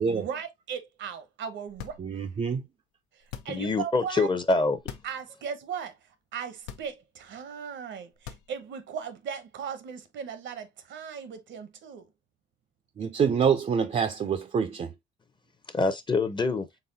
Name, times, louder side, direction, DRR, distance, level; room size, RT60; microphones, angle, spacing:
voice 1, 0.0-2.2 3.1-4.3 5.0-6.0 6.3-12.1, right 7 dB, 70° right, 0.8 m, -38 dB
sound 1, 1.7-2.4 3.2-3.8 4.8-5.2 5.6-5.7 6.6-7.3 8.1-8.8, left 9 dB, 90° left, 0.6 m, -43 dB
voice 2, 2.0-2.6 13.0-14.9, right 6 dB, 35° right, 0.4 m, -26 dB
voice 3, 3.5-4.8 15.7-16.7, left 3 dB, 25° left, 0.6 m, -25 dB
4.0 x 3.4 x 2.7 m
cardioid pair, 90°, 20 cm